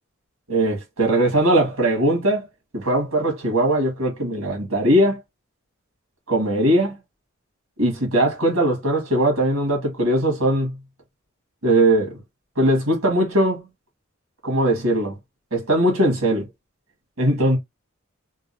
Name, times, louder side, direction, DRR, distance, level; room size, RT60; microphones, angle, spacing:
voice 1, 0.5-2.5 2.7-5.2 6.3-7.0 7.8-10.8 11.6-12.2 12.6-13.6 14.4-15.2 15.5-16.5 17.2-17.6, right 1 dB, 80° right, 1.7 m, -20 dB
3.8 x 2.4 x 2.7 m
head